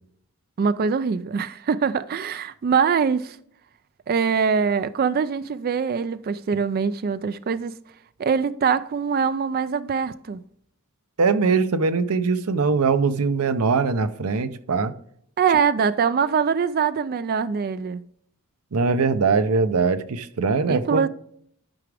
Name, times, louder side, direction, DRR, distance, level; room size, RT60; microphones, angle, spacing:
voice 1, 0.6-3.4 4.1-7.8 8.2-10.4 15.4-18.0 20.7-21.1, right 6 dB, 40° right, 0.3 m, -23 dB
voice 2, 11.2-14.9 18.7-21.1, right 4 dB, 75° right, 0.6 m, -21 dB
11.5 x 4.9 x 3.4 m
head